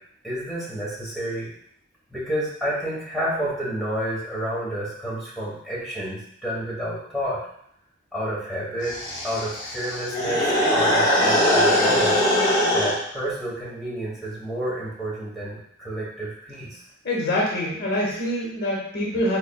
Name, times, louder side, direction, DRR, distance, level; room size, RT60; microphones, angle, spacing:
voice 1, 0.2-1.5 2.1-7.4 8.1-9.0 9.2-12.3 12.7-16.8, right 1 dB, ahead, -8 dB, 1.1 m, -30 dB
sound 1, 8.8-13.0, equal, 20° left, 0.7 m, -21 dB
voice 2, 17.0-19.4, left 1 dB, 50° left, -3 dB, 0.8 m, -25 dB
4.0 x 3.2 x 2.2 m, 0.71 s
head